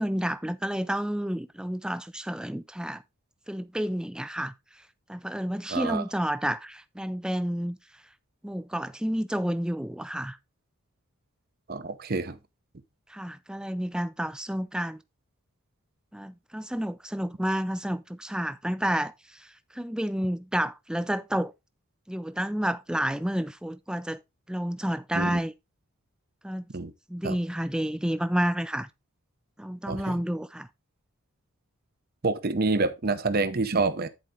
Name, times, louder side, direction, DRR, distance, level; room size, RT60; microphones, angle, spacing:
voice 1, 0.0-3.0 3.5-4.5 5.1-7.8 8.4-10.4 13.1-15.0 16.1-21.5 22.1-24.2 24.5-25.5 26.4-26.7 27.1-28.9 29.6-30.7, equal, 5° right, 0.3 m, -30 dB
voice 2, 5.7-6.0 11.7-12.4 25.1-25.4 26.7-26.9 27.2-27.4 29.9-30.2 32.2-34.1, right 3 dB, 45° right, 0.7 m, -27 dB
10.5 x 4.7 x 3.7 m
head